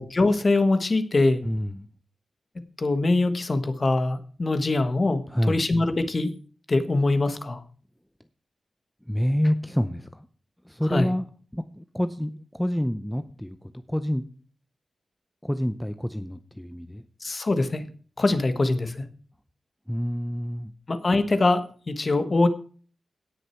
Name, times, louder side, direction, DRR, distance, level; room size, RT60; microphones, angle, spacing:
voice 1, 0.0-1.4 2.8-6.3 6.7-7.6 10.9-11.1 17.2-17.9 18.2-19.1 20.9-22.5, left 2 dB, 35° left, 9 dB, 1.3 m, -23 dB
voice 2, 1.4-1.9 5.3-5.6 9.1-10.3 10.7-11.3 11.5-14.2 15.4-17.1 19.9-20.7, equal, 5° left, 9 dB, 0.6 m, -28 dB
17.5 x 6.5 x 4.5 m, 0.42 s
wide cardioid pair, 140°, 0 cm